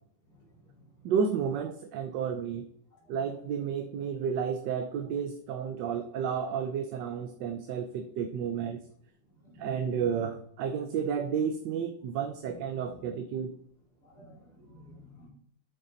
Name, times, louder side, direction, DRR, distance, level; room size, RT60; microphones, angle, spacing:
voice 1, 1.0-2.7 3.1-8.8 9.6-13.6, right 7 dB, 75° right, 6 dB, 1.3 m, -31 dB
voice 2, 14.0-15.3, equal, 55° left, -6 dB, 4.9 m, -52 dB
9.0 x 6.9 x 3.9 m, 0.65 s
omnidirectional pair, 2.0 m